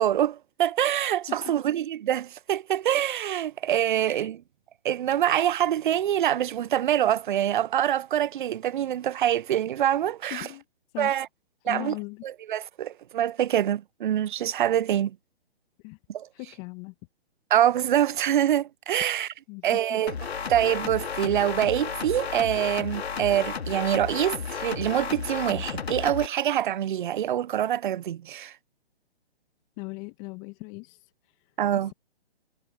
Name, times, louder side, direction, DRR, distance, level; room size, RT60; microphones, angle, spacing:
voice 1, 0.0-4.4 4.8-10.5 11.0-11.3 11.6-11.9 12.2-15.2 16.1-16.3 17.5-19.3 19.6-20.1 20.5-28.5 31.6-31.9, right 11 dB, 50° right, 0.5 m, -25 dB
voice 2, 3.9-4.3 10.3-10.6 10.9-11.2 11.6-12.2 15.8-16.0 16.3-16.9 19.5-19.7 29.8-31.9, left 28 dB, 25° left, 1.6 m, -39 dB
sound 1, 20.1-26.3, left 6 dB, 70° left, 3.1 m, -33 dB
hypercardioid pair, 140°, 32 cm